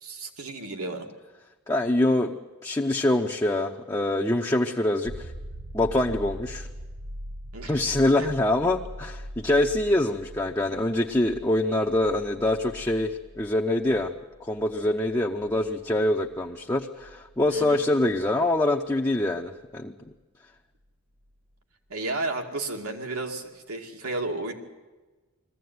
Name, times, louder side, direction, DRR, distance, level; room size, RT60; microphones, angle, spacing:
voice 1, 0.0-1.1 7.5-7.8 8.2-8.3 17.5-17.8 21.9-24.5, right 2 dB, 85° right, 3 dB, 2.3 m, -33 dB
voice 2, 1.7-2.3 2.6-5.3 5.7-6.7 7.7-14.1 14.4-19.9, left 1 dB, 15° left, -1 dB, 0.7 m, -25 dB
sound 1, 5.0-18.6 21.3-21.4, equal, 55° right, 1.3 m, -42 dB
21.0 x 15.0 x 9.4 m, 1.2 s
head